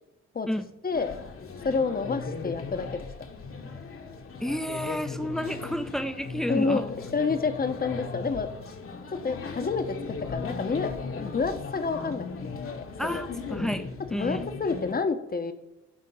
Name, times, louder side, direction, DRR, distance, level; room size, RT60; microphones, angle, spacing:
voice 1, 0.8-1.1 1.6-3.1 6.5-8.5 9.2-13.2 14.1-15.5, left 4 dB, 30° left, 9 dB, 1.1 m, -29 dB
sound 1, 0.9-14.9, left 4 dB, 45° left, 1.5 m, -37 dB
voice 2, 4.4-6.8 13.0-14.5, equal, ahead, 9 dB, 0.8 m, -31 dB
10.5 x 3.7 x 6.9 m, 0.95 s
cardioid pair, 90°, 30 cm